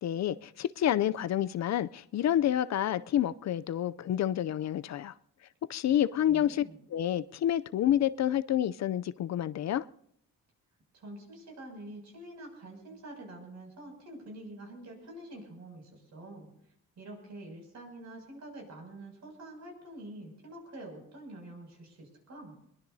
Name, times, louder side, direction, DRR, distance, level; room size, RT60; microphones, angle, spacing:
voice 1, 0.0-5.1 5.7-6.6 6.9-9.8, left 11 dB, 60° left, 0.5 m, -28 dB
voice 2, 6.3-6.8 10.9-16.5 17.0-22.5, right 1 dB, 60° right, 6.8 m, -46 dB
22.0 x 21.5 x 2.7 m
cardioid pair, 120°, 31 cm